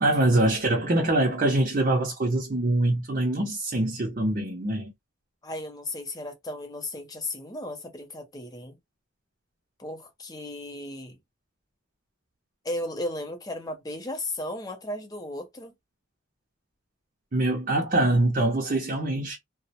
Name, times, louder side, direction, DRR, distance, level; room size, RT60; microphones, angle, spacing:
voice 1, 0.0-4.9 17.3-19.4, right 2 dB, 40° right, 0.6 m, -24 dB
voice 2, 5.4-8.8 9.8-11.2 12.6-15.7, left 1 dB, 20° left, 0.5 m, -35 dB
2.3 x 2.0 x 2.6 m
head